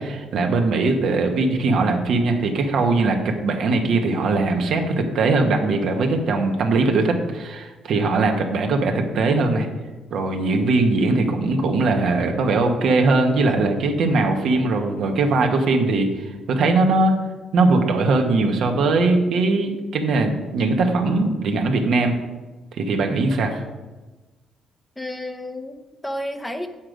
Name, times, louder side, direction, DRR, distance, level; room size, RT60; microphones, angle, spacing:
voice 1, 0.0-9.7 10.1-17.1 17.5-22.1 22.7-23.6, right 3 dB, 70° right, 3 dB, 1.4 m, -20 dB
voice 2, 25.0-26.7, left 1 dB, 10° left, 7 dB, 0.8 m, -31 dB
7.9 x 7.3 x 5.0 m, 1.2 s
cardioid pair, 90°, 0 cm